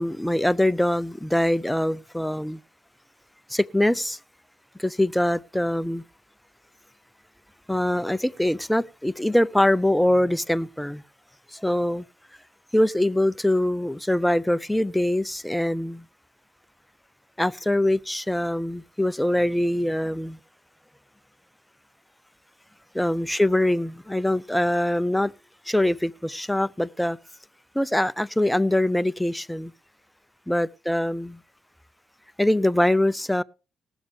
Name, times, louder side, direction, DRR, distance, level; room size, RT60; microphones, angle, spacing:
voice 1, 0.0-2.6 3.5-4.2 4.8-6.0 7.7-11.0 11.5-12.0 12.7-16.0 17.4-20.4 22.9-25.3 25.7-27.2 27.7-29.7 30.5-31.4 32.4-33.4, left 1 dB, 5° left, 0.5 m, -23 dB
20.0 x 7.2 x 3.4 m
cardioid pair, 90°, 0 cm